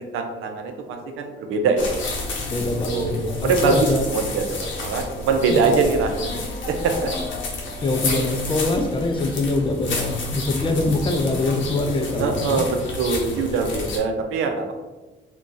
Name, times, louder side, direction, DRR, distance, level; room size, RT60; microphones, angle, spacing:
voice 1, 0.0-1.9 2.9-3.1 3.4-7.1 12.2-14.7, right 4 dB, 90° right, 4 dB, 0.5 m, -23 dB
sound 1, 1.8-14.0, left 2 dB, 75° left, 0.7 m, -30 dB
voice 2, 2.5-4.0 5.5-5.6 7.8-12.6, left 2 dB, 25° left, 5 dB, 0.4 m, -24 dB
2.3 x 2.3 x 3.8 m, 1.2 s
cardioid pair, 90°, 20 cm